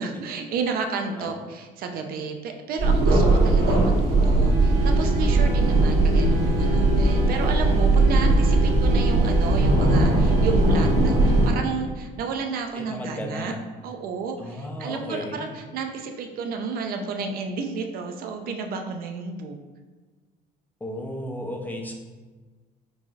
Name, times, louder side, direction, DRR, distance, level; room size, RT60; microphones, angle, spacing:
voice 1, 0.0-13.5 13.8-19.6, right 5 dB, 60° right, 5 dB, 0.5 m, -31 dB
sound 1, 2.8-11.5, right 2 dB, 80° right, 1.3 m, -19 dB
voice 2, 12.7-13.6 14.4-15.5 20.8-21.9, left 1 dB, 10° left, 1 dB, 0.5 m, -34 dB
4.6 x 2.6 x 2.4 m, 1.3 s
cardioid pair, 110°, 17 cm